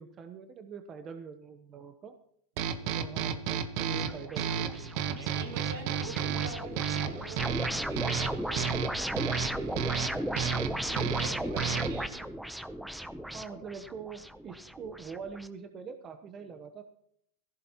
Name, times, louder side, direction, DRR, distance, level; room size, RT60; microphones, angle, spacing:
voice 1, 0.0-2.1 2.9-5.2 11.3-11.5 13.3-16.8, right 6 dB, 35° right, 1.0 m, -44 dB
sound 1, 2.6-12.1, right 8 dB, 60° right, 1.2 m, -33 dB
voice 2, 2.6-3.0 5.1-10.5 10.9-12.4, right 3 dB, 80° right, 4.0 m, -45 dB
sound 2, 4.0-15.5, equal, ahead, 0.7 m, -36 dB
17.5 x 15.0 x 3.0 m
supercardioid pair, 125°, 0 cm